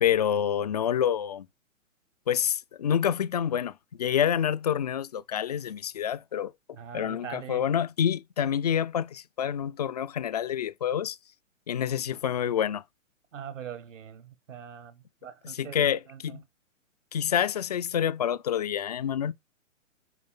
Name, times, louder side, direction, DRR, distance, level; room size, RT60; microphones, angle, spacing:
voice 1, 0.0-1.5 2.3-6.5 6.9-11.2 11.7-12.8 15.4-16.4 17.1-19.3, left 9 dB, 35° left, 0.4 m, -27 dB
voice 2, 6.7-7.6 13.3-16.4, right 8 dB, 70° right, 1.3 m, -42 dB
9.6 x 4.9 x 3.6 m
figure-of-eight pair, 130°, 40 cm